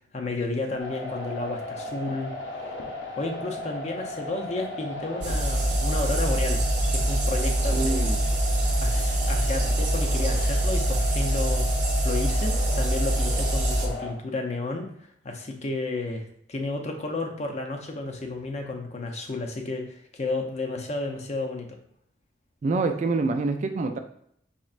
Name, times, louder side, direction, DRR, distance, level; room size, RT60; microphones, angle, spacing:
voice 1, 0.1-2.6 3.2-6.6 6.9-8.1 8.8-11.7 12.0-14.9 15.2-21.7, left 2 dB, 40° left, 3 dB, 0.6 m, -32 dB
sound 1, 0.8-14.1, left 2 dB, 85° left, 0.8 m, -36 dB
sound 2, 5.2-13.9, right 1 dB, 75° right, 0.7 m, -24 dB
voice 2, 7.7-8.2 22.6-24.0, right 3 dB, 40° right, 6 dB, 0.3 m, -26 dB
4.3 x 3.1 x 2.4 m, 0.69 s
head